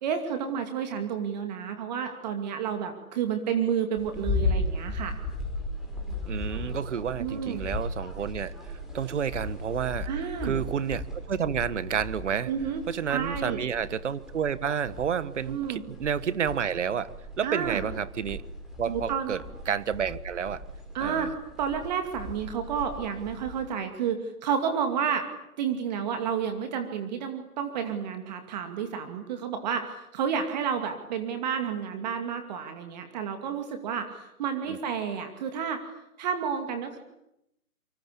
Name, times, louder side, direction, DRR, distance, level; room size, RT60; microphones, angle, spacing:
voice 1, 0.0-5.2 7.2-7.6 10.1-10.6 12.5-12.8 13.1-13.6 15.5-15.8 17.4-17.8 18.9-19.3 20.9-21.3 21.6-25.3 25.6-35.9 36.2-37.0, right 7 dB, 30° right, 7 dB, 2.5 m, -30 dB
sound 1, 4.0-23.7, left 2 dB, ahead, 5.2 m, -36 dB
voice 2, 6.3-8.5 8.9-10.1 10.4-12.5 12.9-17.1 17.4-18.4 18.8-19.4 19.7-20.6 21.0-21.3 34.7-34.8, right 7 dB, 50° right, 17 dB, 1.5 m, -30 dB
27.5 x 25.0 x 8.5 m, 0.83 s
hypercardioid pair, 150°, 44 cm